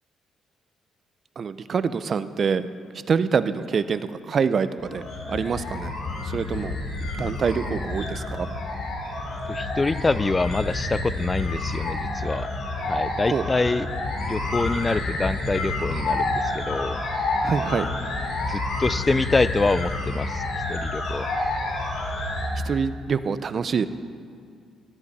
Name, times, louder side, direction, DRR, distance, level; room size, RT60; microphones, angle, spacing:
voice 1, 1.4-2.7 3.1-4.0 4.3-5.0 5.3-5.9 6.2-6.8 7.2-8.5 13.3-13.4 17.4-17.9 22.7-23.9, right 6 dB, 50° right, 13 dB, 0.5 m, -25 dB
sound 1, 4.8-22.5, left 2 dB, 70° left, 2.7 m, -29 dB
voice 2, 9.5-12.5 12.8-13.9 14.3-17.0 18.5-20.4 20.7-21.3, left 3 dB, 25° left, 16 dB, 0.3 m, -25 dB
16.0 x 12.0 x 4.2 m, 2.3 s
cardioid pair, 90°, 0 cm